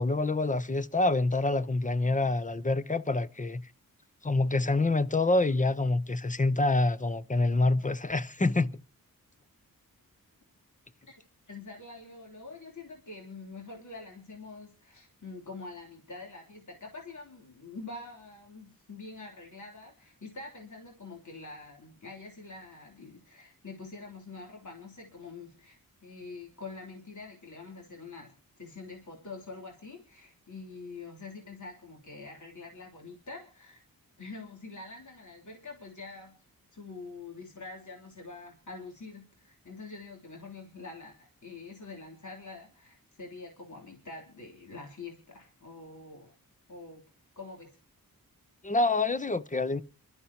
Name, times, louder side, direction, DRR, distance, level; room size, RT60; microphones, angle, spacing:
voice 1, 0.0-3.6 4.2-8.7 48.6-49.8, left 2 dB, 20° left, 0.8 m, -26 dB
voice 2, 11.5-33.8 34.2-36.3 36.7-46.3 46.7-47.0 47.4-47.8, left 3 dB, 55° left, 3.6 m, -45 dB
27.0 x 13.0 x 2.9 m
wide cardioid pair, 75°, 35 cm